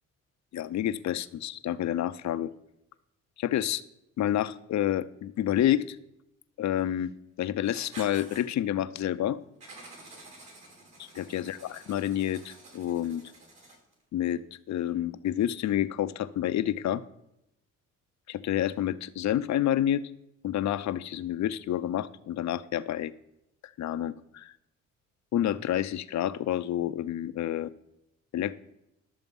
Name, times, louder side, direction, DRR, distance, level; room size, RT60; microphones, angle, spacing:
voice 1, 0.5-2.5 3.4-3.8 4.2-6.0 6.6-7.1 7.4-9.4 11.0-13.2 14.1-17.0 18.3-20.0 20.4-23.1 23.6-24.5 25.3-27.7 28.3-28.6, left 11 dB, 65° left, 13 dB, 0.7 m, -29 dB
Writing, 7.6-8.4 9.6-13.9, right 2 dB, 60° right, 4.9 m, -49 dB
12.5 x 7.0 x 5.4 m, 0.82 s
cardioid pair, 90°, 30 cm